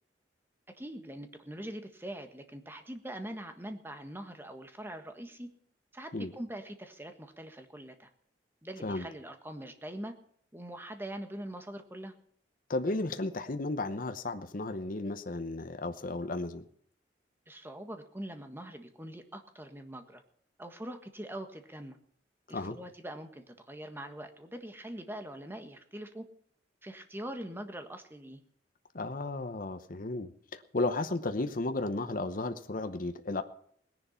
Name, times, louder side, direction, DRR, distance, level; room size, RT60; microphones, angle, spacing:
voice 1, 0.8-5.5 5.9-8.1 8.6-10.1 10.5-12.1 17.5-20.2 20.6-22.0 22.5-26.2 26.8-28.4, right 1 dB, 15° right, 6 dB, 1.6 m, -43 dB
voice 2, 12.7-16.6 22.5-22.8 28.9-33.4, left 2 dB, 50° left, 8 dB, 0.9 m, -34 dB
18.5 x 10.5 x 5.8 m, 0.63 s
head